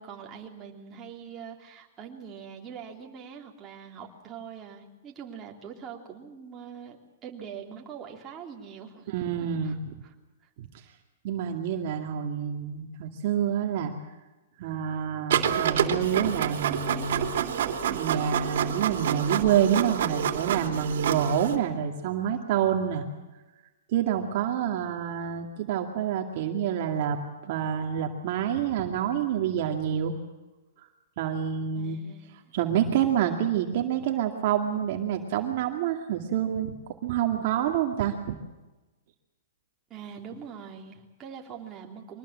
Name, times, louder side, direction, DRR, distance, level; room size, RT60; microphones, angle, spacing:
voice 1, 0.0-9.8 10.0-10.1 10.4-10.5 31.7-32.5 39.9-42.2, right 7 dB, 20° right, 0 dB, 3.3 m, -43 dB
voice 2, 9.1-10.0 10.6-10.7 11.2-13.9 14.6-17.3 17.9-23.0 23.9-27.2 27.4-30.2 31.2-32.0 32.3-36.8 37.0-38.3, right 9 dB, 45° right, 3 dB, 2.2 m, -27 dB
Printer, 15.3-21.6, right 9 dB, 65° right, 3.1 m, -28 dB
24.0 x 19.5 x 7.5 m, 1.1 s
hypercardioid pair, 155°, 0 cm